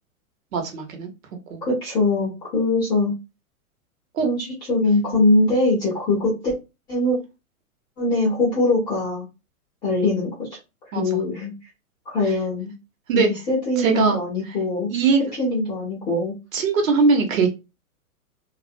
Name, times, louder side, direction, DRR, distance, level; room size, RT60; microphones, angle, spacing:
voice 1, 0.5-1.1 1.5-1.6 4.1-4.3 10.9-11.2 13.1-13.3 13.8-14.2 14.9-15.2 16.5-17.5, right 4 dB, 65° right, 4 dB, 1.0 m, -20 dB
voice 2, 1.6-3.1 4.2-6.5 6.9-7.2 8.0-9.3 9.8-10.5 10.9-11.5 12.1-12.7 13.1-14.9 15.3-16.3, left 2 dB, 10° left, -5 dB, 0.3 m, -22 dB
2.3 x 2.1 x 2.5 m, 0.27 s
hypercardioid pair, 130°, 43 cm